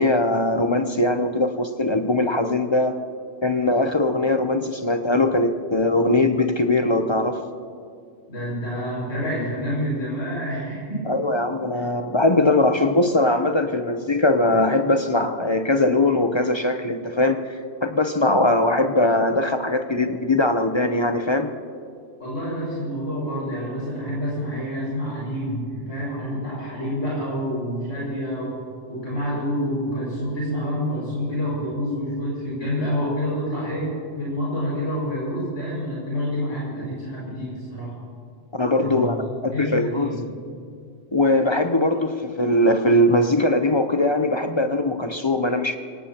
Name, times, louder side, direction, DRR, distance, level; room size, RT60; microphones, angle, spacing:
voice 1, 0.0-3.0 3.4-7.4 11.1-21.5 38.6-39.2 39.4-40.1 41.1-45.8, left 2 dB, 30° left, 7 dB, 0.6 m, -21 dB
voice 2, 8.3-11.1 11.7-11.8 22.2-28.5 28.9-37.9 38.8-39.1 39.5-40.2, equal, 70° left, -7 dB, 6.2 m, -28 dB
25.5 x 18.0 x 2.9 m, 2.2 s
omnidirectional pair, 1.3 m